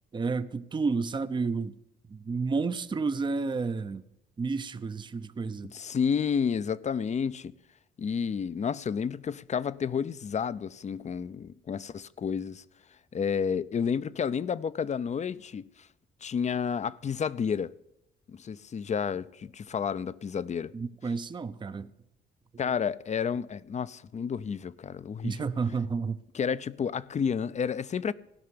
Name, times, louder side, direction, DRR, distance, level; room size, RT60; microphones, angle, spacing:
voice 1, 0.1-1.8 2.1-4.0 4.4-5.7 20.7-21.9 25.2-26.2, right 4 dB, 25° right, 0.6 m, -31 dB
voice 2, 5.7-7.5 8.0-12.6 13.1-15.6 16.2-17.7 18.3-20.7 22.6-25.4 26.3-28.1, left 7 dB, 35° left, 0.5 m, -30 dB
16.0 x 5.7 x 9.5 m
cardioid pair, 90°, 20 cm